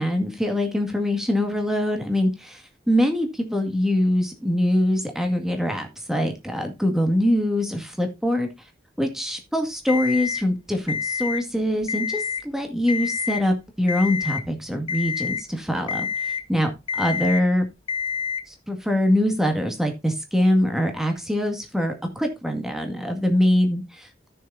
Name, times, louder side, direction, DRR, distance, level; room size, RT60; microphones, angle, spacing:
voice 1, 0.0-2.6 2.9-8.5 9.0-17.6 18.5-24.3, left 1 dB, 5° right, 4 dB, 1.9 m, -23 dB
Alarm, 9.9-10.4 10.9-11.4 11.8-12.4 12.9-13.4 13.9-14.4 14.9-15.4 15.9-16.4 16.9-17.4 17.9-18.4, left 6 dB, 30° left, 0.6 m, -27 dB
14.0 x 6.8 x 2.7 m, 0.24 s
head